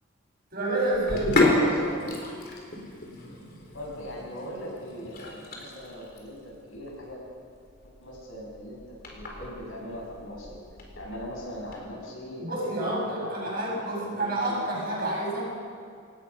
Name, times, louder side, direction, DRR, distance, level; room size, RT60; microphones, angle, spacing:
voice 1, 0.5-1.6 12.4-15.4, right 1 dB, 45° right, -4 dB, 7.5 m, -29 dB
Sink (filling or washing), 0.9-11.8, left 2 dB, 50° left, 4.3 m, -31 dB
voice 2, 1.5-2.0 3.7-7.2 8.0-8.8 9.1-10.6 10.9-15.0, left 1 dB, 80° left, -2 dB, 7.8 m, -40 dB
27.0 x 18.5 x 5.9 m, 2.3 s
head